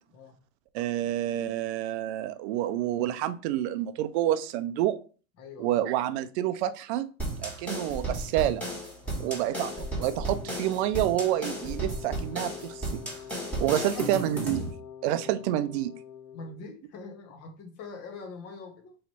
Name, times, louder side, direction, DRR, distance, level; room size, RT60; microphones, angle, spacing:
voice 1, 0.7-5.0 5.6-7.1 7.4-8.6 9.2-12.8 13.6-14.6 15.0-15.9, right 13 dB, 55° right, 0.5 m, -28 dB
voice 2, 5.4-5.8 9.0-9.5 13.6-14.1 16.3-19.0, left 4 dB, 35° left, 1.0 m, -44 dB
sound 1, 7.2-14.7, right 1 dB, 5° left, 1.4 m, -34 dB
Wind instrument woodwind instrument, 9.5-16.8, left 9 dB, 75° left, 0.8 m, -45 dB
3.2 x 2.9 x 4.2 m
supercardioid pair, 130°, 39 cm